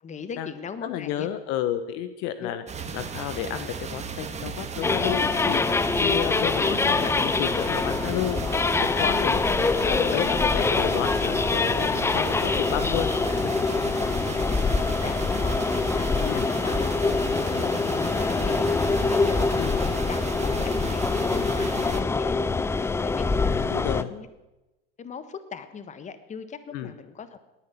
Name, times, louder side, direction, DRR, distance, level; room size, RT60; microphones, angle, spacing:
voice 1, 0.0-1.3 2.4-2.5 4.8-4.9 14.3-16.9 17.2-24.3 25.0-27.4, left 6 dB, 25° left, 12 dB, 1.4 m, -39 dB
voice 2, 0.8-2.6 2.9-13.5 13.8-14.0 16.2-16.5 19.6-19.8 23.5-24.1 26.7-26.9, left 11 dB, 55° left, 12 dB, 1.1 m, -31 dB
sound 1, 2.7-22.0, right 5 dB, 20° right, 1.8 m, -35 dB
sound 2, 4.8-24.0, left 4 dB, 10° left, 0.5 m, -24 dB
18.0 x 10.0 x 7.2 m, 1.0 s
hypercardioid pair, 95°, 30 cm